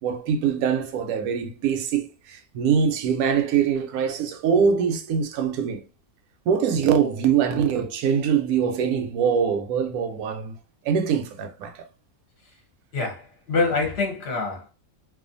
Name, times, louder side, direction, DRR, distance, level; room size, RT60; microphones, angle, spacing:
voice 1, 0.0-5.8 6.5-10.5 10.8-11.8, right 7 dB, 75° right, 1.0 m, -23 dB
voice 2, 12.9-14.7, left 3 dB, 55° left, 0.8 m, -25 dB
2.4 x 2.4 x 2.5 m
omnidirectional pair, 1.5 m